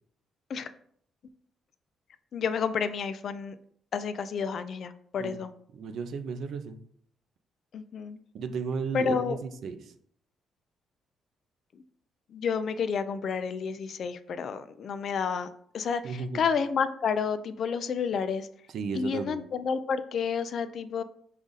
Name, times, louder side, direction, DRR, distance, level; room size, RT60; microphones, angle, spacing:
voice 1, 2.3-3.6 3.9-5.5 7.7-8.2 8.9-9.4 11.7-11.8 12.3-15.5 15.7-18.5 18.9-21.0, left 6 dB, 60° left, 12 dB, 0.4 m, -30 dB
voice 2, 5.7-6.8 8.3-10.0 16.0-16.4 18.7-19.4, right 5 dB, 70° right, 8 dB, 0.5 m, -34 dB
5.1 x 2.4 x 3.9 m, 0.65 s
cardioid pair, 90°, 0 cm